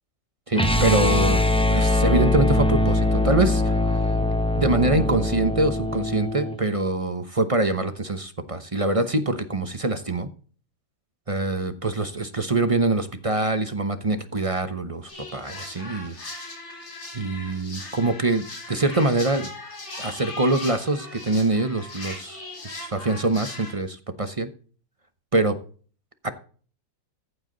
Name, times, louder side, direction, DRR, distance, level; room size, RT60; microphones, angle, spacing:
sound 1, 0.5-6.6, left 2 dB, 10° left, 0.3 m, -22 dB
voice 1, 0.5-1.4 1.7-3.7 4.5-10.3 11.3-16.1 17.1-19.5 20.0-24.5 25.3-25.6 26.2-26.3, right 2 dB, 30° right, 9 dB, 0.6 m, -24 dB
sound 2, 15.1-23.7, left 2 dB, 90° left, 4.9 m, -38 dB
14.5 x 8.1 x 3.9 m, 0.40 s
omnidirectional pair, 2.0 m